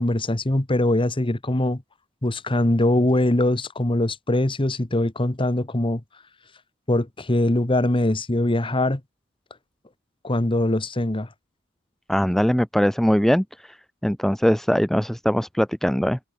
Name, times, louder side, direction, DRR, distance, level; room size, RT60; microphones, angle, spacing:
voice 1, 0.0-1.8 2.2-6.0 6.9-9.0 10.2-11.3, left 1 dB, 25° left, 1.3 m, -22 dB
voice 2, 12.1-13.8 14.0-16.2, equal, ahead, 0.4 m, -21 dB
head